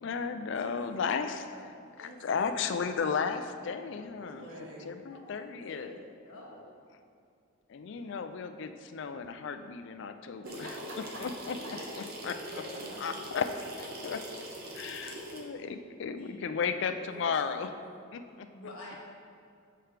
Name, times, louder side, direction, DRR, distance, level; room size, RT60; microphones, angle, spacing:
voice 1, 0.0-4.5 4.8-5.9 7.7-10.7 11.2-11.6 12.0-12.6 13.0-13.5 13.8-14.2 14.7-17.7 18.1-18.5, left 6 dB, 55° left, 8 dB, 0.3 m, -34 dB
voice 2, 0.5-0.9 1.1-2.5 4.3-4.4 5.1-5.3 5.6-6.0 6.2-6.7 7.9-8.2 11.4-11.8 16.1-16.3 17.2-17.3 17.6-17.7 18.5-19.1, left 1 dB, 80° left, -4 dB, 1.5 m, -49 dB
voice 3, 4.1-4.9 10.4-11.2 11.6-11.7 12.5-13.4, equal, 65° right, -3 dB, 1.3 m, -45 dB
sound 1, 10.4-15.4, right 1 dB, 45° right, 0.8 m, -43 dB
7.6 x 4.5 x 3.3 m, 2.4 s
head